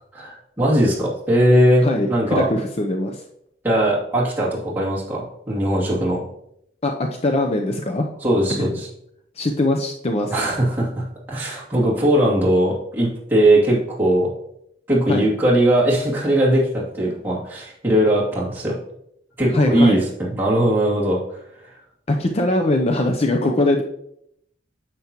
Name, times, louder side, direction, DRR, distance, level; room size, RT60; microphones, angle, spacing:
voice 1, 0.1-2.5 3.6-6.2 8.2-8.9 10.3-14.3 14.9-18.8 19.4-21.2, right 1 dB, 10° right, -7 dB, 2.5 m, -19 dB
voice 2, 1.8-3.2 6.8-8.1 8.6-8.7 9.4-10.3 15.1-15.3 19.5-20.0 22.1-23.8, left 1 dB, 35° left, 3 dB, 0.6 m, -21 dB
9.4 x 6.9 x 2.9 m, 0.75 s
head